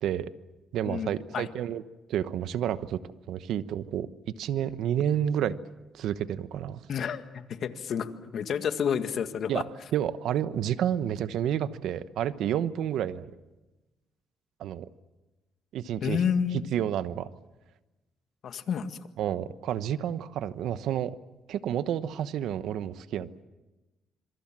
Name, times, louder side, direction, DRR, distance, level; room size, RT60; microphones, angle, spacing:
voice 1, 0.0-0.3 0.7-1.8 2.1-3.0 3.3-4.1 4.4-5.5 5.9-6.8 9.5-9.6 9.9-13.3 14.6-14.9 15.7-16.2 16.7-17.3 19.2-21.1 21.5-23.4, right 10 dB, 80° right, 13 dB, 1.0 m, -30 dB
voice 2, 0.8-1.5 6.9-9.6 16.0-16.7 18.4-19.0, left 7 dB, 65° left, 9 dB, 1.8 m, -30 dB
26.5 x 23.5 x 7.5 m, 1.1 s
cardioid pair, 90°, 0 cm